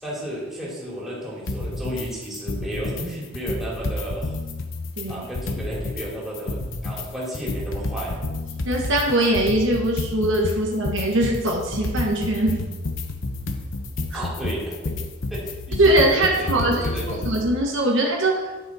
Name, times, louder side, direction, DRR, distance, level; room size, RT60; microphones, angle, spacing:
voice 1, 0.0-4.4 5.1-8.2 14.1-14.9 15.3-17.3, equal, ahead, -7 dB, 2.7 m, -33 dB
sound 1, 1.5-2.1 2.3-3.1 3.3-6.1 6.3-17.5, left 2 dB, 60° left, 0.9 m, -30 dB
voice 2, 5.0-5.3 8.7-12.6 14.1-14.2 15.8-16.9 17.2-18.5, right 1 dB, 60° right, 0 dB, 1.3 m, -21 dB
11.0 x 6.2 x 4.1 m, 1.2 s
head